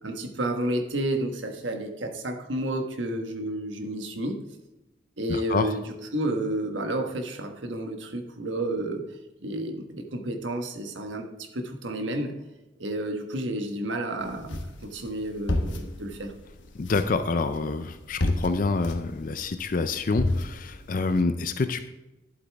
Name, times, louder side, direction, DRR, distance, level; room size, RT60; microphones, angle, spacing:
voice 1, 0.0-4.4 5.2-9.0 9.4-11.3 11.5-12.3 12.8-14.6 14.9-16.3, right 1 dB, 80° right, 4 dB, 1.3 m, -31 dB
voice 2, 5.3-5.7 16.8-21.9, left 3 dB, 45° left, 10 dB, 0.5 m, -27 dB
sound 1, 14.2-21.2, left 1 dB, 80° left, 1.2 m, -33 dB
11.5 x 8.0 x 3.4 m, 1.0 s
head